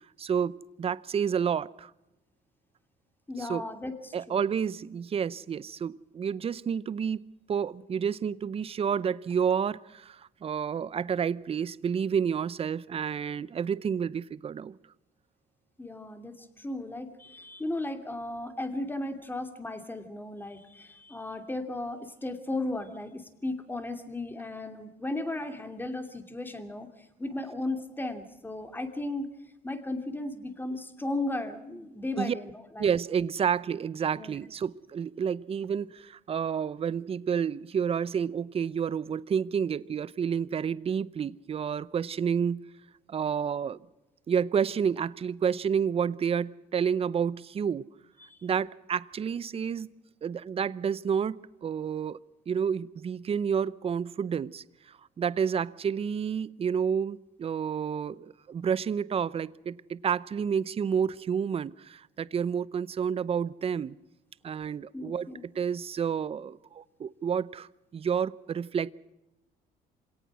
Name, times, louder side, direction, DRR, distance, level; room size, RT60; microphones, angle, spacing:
voice 1, 0.2-1.9 3.4-3.6 4.1-7.2 7.5-14.8 32.2-32.3 32.8-42.7 43.1-43.8 44.3-47.9 48.4-49.9 50.2-52.2 52.5-64.0 64.4-65.3 65.5-68.9, right 7 dB, 35° right, 0.7 m, -30 dB
voice 2, 3.3-4.5 15.8-29.3 29.6-32.9 34.1-34.4 48.2-48.4 64.9-65.4, left 2 dB, 10° left, 2.7 m, -35 dB
27.0 x 18.0 x 6.2 m
cardioid pair, 110°, 17 cm